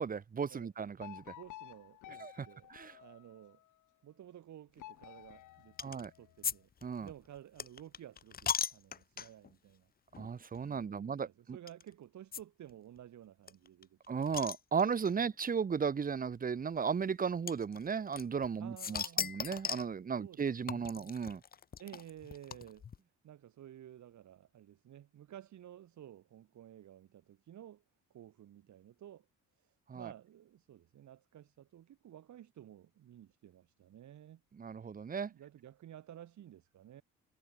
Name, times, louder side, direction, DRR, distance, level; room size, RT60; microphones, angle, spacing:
voice 1, 0.0-1.2 2.2-2.9 5.8-6.1 6.8-7.1 10.2-11.6 14.1-21.4 29.9-30.1 34.6-35.3, right 6 dB, 30° right, 0.7 m, -35 dB
sound 1, 1.0-3.7 4.8-6.5, left 15 dB, 85° left, 3.9 m, -53 dB
voice 2, 1.3-2.7 3.0-3.6 4.0-6.7 7.0-9.9 10.7-14.0 15.2-15.3 18.6-19.3 20.2-21.1 21.8-22.9 23.2-27.8 28.1-29.3 29.6-34.4 35.3-37.0, right 11 dB, 70° right, 4.6 m, -54 dB
sound 2, 5.8-6.1 6.4-9.5 10.1-10.3 10.5-10.6 11.7-11.8 12.3-12.4 12.7-12.8 13.0-13.1 13.5-15.1 16.0-16.1 17.5-18.5 18.8-19.9 20.7-23.0, left 7 dB, 30° left, 0.6 m, -38 dB
cardioid pair, 90°, 30 cm